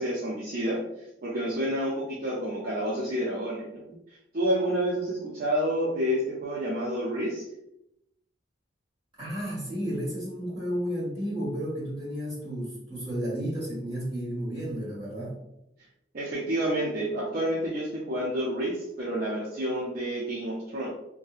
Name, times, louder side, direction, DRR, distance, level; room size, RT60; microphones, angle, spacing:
voice 1, 0.0-3.9 4.3-7.5 16.1-20.9, right 1 dB, 45° right, -5 dB, 0.5 m, -29 dB
voice 2, 9.2-15.3, equal, 25° right, -8 dB, 1.4 m, -32 dB
2.7 x 2.6 x 2.4 m, 0.84 s
head